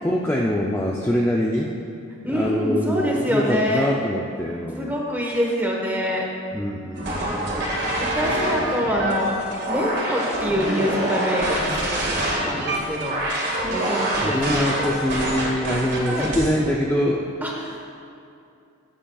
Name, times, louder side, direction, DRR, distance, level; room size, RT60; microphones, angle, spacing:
voice 1, 0.0-1.7 2.2-5.0 6.5-7.7 12.1-12.3 14.1-17.3, equal, 10° left, -3 dB, 0.4 m, -24 dB
voice 2, 2.2-3.9 4.8-6.2 8.0-9.3 9.7-13.2 13.7-14.8 16.1-16.3 17.4-17.8, equal, 10° right, -2 dB, 1.2 m, -25 dB
sound 1, 6.9-16.6, right 1 dB, 50° right, 1.9 m, -25 dB
15.0 x 8.7 x 2.4 m, 2.6 s
head